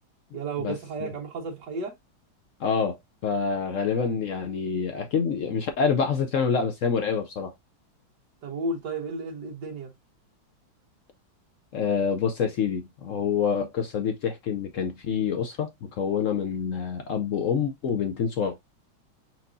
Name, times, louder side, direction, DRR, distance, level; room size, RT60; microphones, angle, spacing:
voice 1, 0.3-1.9 8.4-9.9, right 3 dB, 60° right, 2.0 m, -33 dB
voice 2, 2.6-3.0 3.2-7.5 11.7-18.6, left 6 dB, 75° left, 0.7 m, -27 dB
4.5 x 4.2 x 2.6 m
omnidirectional pair, 2.2 m